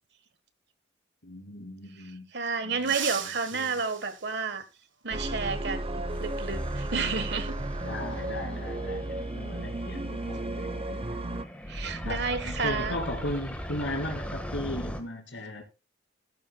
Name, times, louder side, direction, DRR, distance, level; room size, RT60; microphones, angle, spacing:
voice 1, 1.2-2.3 2.6-2.9 3.2-3.8 7.8-11.1 12.0-15.6, left 1 dB, 75° left, 2.8 m, -37 dB
voice 2, 2.3-4.6 5.0-7.6 11.7-13.0, right 4 dB, 60° right, 1.3 m, -31 dB
sound 1, 2.8-5.2 6.8-6.9 8.2-8.3 9.9-10.0 10.4-10.6 11.1-13.3 13.5-13.8 14.2-14.7, right 9 dB, 85° right, 1.5 m, -41 dB
sound 2, 5.1-11.4, right 1 dB, 30° right, 0.8 m, -34 dB
sound 3, 6.1-15.0, equal, 5° left, 1.5 m, -40 dB
14.0 x 11.5 x 2.3 m
head